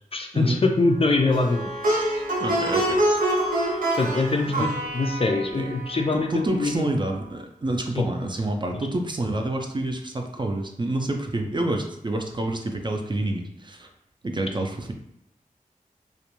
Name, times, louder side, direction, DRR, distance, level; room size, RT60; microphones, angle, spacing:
voice 1, 0.1-1.7 3.9-6.8 7.9-8.0, left 3 dB, 40° left, 3 dB, 0.4 m, -23 dB
Plucked string instrument, 1.3-6.5, right 1 dB, 85° right, 0.6 m, -26 dB
voice 2, 2.4-3.1 4.6-4.7 5.5-5.7 6.1-13.9 14.2-14.9, right 1 dB, 35° right, 3 dB, 0.4 m, -28 dB
2.4 x 2.2 x 2.9 m, 0.78 s
wide cardioid pair, 65°, 14 cm